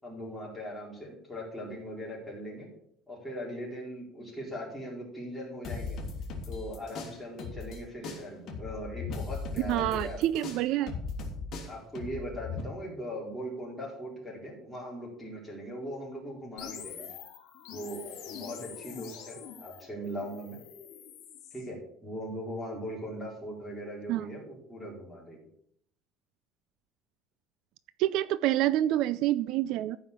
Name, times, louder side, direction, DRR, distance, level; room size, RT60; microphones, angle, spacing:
voice 1, 0.0-2.7 3.1-6.0 6.5-10.2 11.7-17.1 17.7-20.6 21.5-25.4, equal, 5° left, -5 dB, 4.4 m, -40 dB
sound 1, 5.6-7.8 8.0-12.6, left 4 dB, 35° left, 2.9 m, -38 dB
voice 2, 9.6-10.9 24.1-24.3 28.0-30.0, right 13 dB, 60° right, 16 dB, 0.4 m, -27 dB
sound 2, 16.6-21.7, left 7 dB, 60° left, 2.9 m, -45 dB
14.0 x 5.8 x 6.9 m, 0.68 s
cardioid pair, 170°, 0 cm